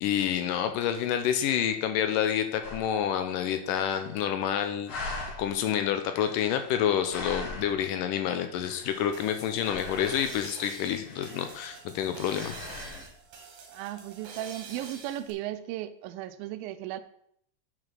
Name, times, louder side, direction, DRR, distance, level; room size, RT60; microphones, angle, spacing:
voice 1, 0.0-4.9 5.4-12.5, left 9 dB, 80° left, 8 dB, 2.1 m, -28 dB
sound 1, 2.6-3.0 3.4-3.5 3.6-4.5 4.9-5.5 6.0-7.9 8.4-9.3 9.6-10.5 11.0-12.0 12.3-13.1, left 2 dB, 50° left, 1.7 m, -41 dB
sound 2, 8.9-15.3, right 5 dB, 60° right, 2.6 m, -47 dB
voice 2, 13.7-17.0, right 13 dB, 90° right, 12 dB, 2.4 m, -36 dB
7.9 x 5.8 x 5.9 m, 0.70 s
omnidirectional pair, 4.1 m